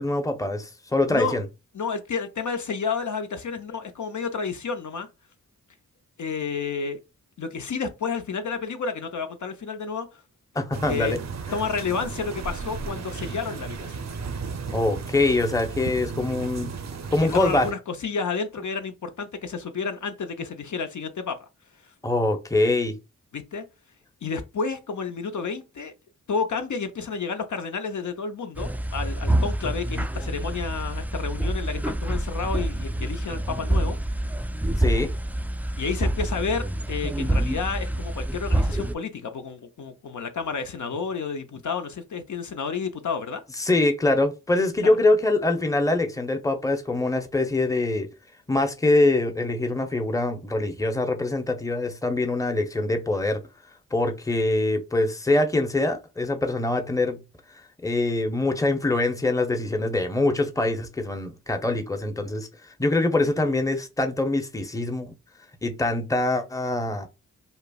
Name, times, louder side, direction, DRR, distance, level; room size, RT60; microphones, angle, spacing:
voice 1, 0.0-1.4 10.6-11.2 14.7-16.7 17.1-17.7 22.0-23.0 34.8-35.1 43.6-48.1 48.5-53.4 53.9-57.2 57.8-62.5 62.8-65.1 65.6-67.1, left 2 dB, 10° left, 0.7 m, -24 dB
voice 2, 1.7-5.1 6.2-7.0 7.4-10.2 10.9-11.2 11.5-14.0 17.3-21.5 23.3-23.6 24.2-25.9 26.3-34.0 35.8-43.4 44.8-45.0, left 5 dB, 60° left, 0.6 m, -30 dB
sound 1, 10.7-17.7, right 5 dB, 55° right, 0.6 m, -34 dB
sound 2, 28.6-38.9, right 1 dB, 5° right, 0.3 m, -27 dB
5.3 x 2.0 x 2.3 m
cardioid pair, 55°, 33 cm